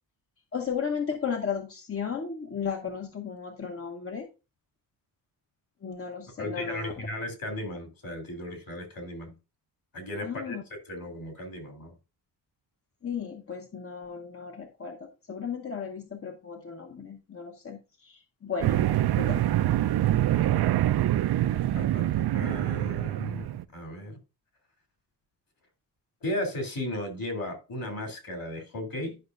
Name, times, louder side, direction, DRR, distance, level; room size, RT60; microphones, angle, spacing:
voice 1, 0.5-4.3 5.8-7.1 10.2-10.6 13.0-18.9 19.2-19.6, left 6 dB, 30° left, 0.8 m, -35 dB
voice 2, 6.4-9.3 9.9-11.9 21.7-24.2 26.2-29.2, left 1 dB, 50° left, 3.0 m, -35 dB
sound 1, 18.6-23.6, right 13 dB, 60° right, 0.5 m, -25 dB
11.0 x 5.6 x 2.5 m
wide cardioid pair, 150°, 43 cm